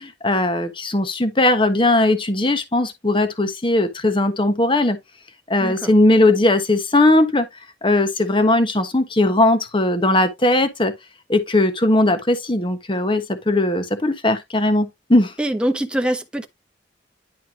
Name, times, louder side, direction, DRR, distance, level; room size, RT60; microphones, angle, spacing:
voice 1, 0.0-5.0 5.5-7.5 7.8-10.9 11.3-15.3, left 2 dB, 30° left, 1.3 m, -18 dB
voice 2, 5.6-5.9 15.4-16.5, right 1 dB, 5° right, 1.0 m, -23 dB
11.0 x 4.4 x 3.0 m
head